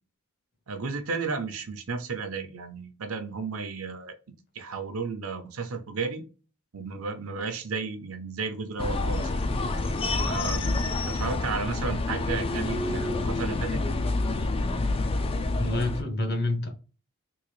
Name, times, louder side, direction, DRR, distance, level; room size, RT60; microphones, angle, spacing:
voice 1, 0.7-4.1 4.5-6.2 6.7-9.3 10.2-13.8, right 4 dB, 70° right, 0.7 m, -33 dB
sound 1, 8.8-16.0, left 2 dB, 25° left, 0.3 m, -28 dB
voice 2, 15.6-16.7, left 2 dB, 45° left, 0.9 m, -27 dB
3.7 x 2.5 x 3.1 m
head